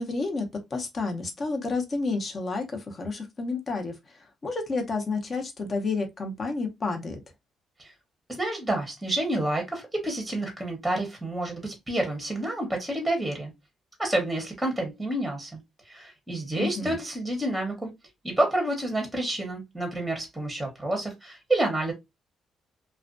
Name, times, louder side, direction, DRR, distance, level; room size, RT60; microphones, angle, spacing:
voice 1, 0.0-7.2 16.6-17.0, left 3 dB, 40° left, 0.7 m, -30 dB
voice 2, 8.3-13.5 14.0-15.6 15.9-17.9 18.2-21.9, right 1 dB, 5° right, 0.8 m, -29 dB
2.4 x 2.2 x 2.5 m
cardioid pair, 90°, 0 cm